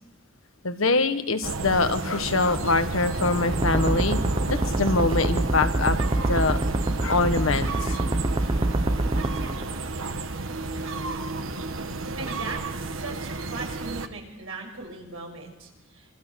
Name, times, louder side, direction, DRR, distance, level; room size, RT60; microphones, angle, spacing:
voice 1, 0.6-4.2 4.5-6.6 7.0-8.0, left 3 dB, 75° left, 8 dB, 1.6 m, -24 dB
sound 1, 1.4-14.1, right 3 dB, 70° right, 1.4 m, -32 dB
sound 2, 3.5-10.0, right 1 dB, 25° right, 0.8 m, -26 dB
voice 2, 12.2-16.1, right 3 dB, 85° right, 1 dB, 6.5 m, -38 dB
27.0 x 23.5 x 6.5 m, 1.1 s
head